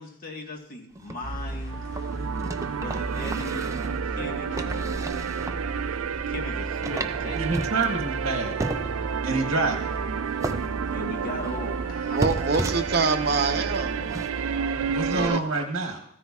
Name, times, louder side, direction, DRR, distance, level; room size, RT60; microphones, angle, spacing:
voice 1, 0.0-1.9 2.7-7.5 10.9-12.2 12.5-12.6, left 1 dB, 40° left, 1 dB, 1.5 m, -39 dB
sound 1, 1.0-4.0 4.6-5.6 6.1-6.2 6.4-6.5 6.8-8.4 8.6-9.2 9.8-10.0 10.4-11.6 11.9-13.3 13.7-14.3 14.7-14.8, right 2 dB, 15° right, 0.4 m, -34 dB
sound 2, 1.2-15.3, right 1 dB, 60° left, 1.8 m, -36 dB
sound 3, 1.7-15.4, right 7 dB, 85° right, 0.4 m, -31 dB
voice 2, 7.3-8.6 9.2-9.9 14.9-16.0, right 3 dB, 65° right, 3 dB, 1.2 m, -27 dB
voice 3, 12.1-14.0 15.1-15.4, right 4 dB, 45° right, 6 dB, 0.8 m, -25 dB
15.0 x 13.5 x 2.4 m, 0.72 s
head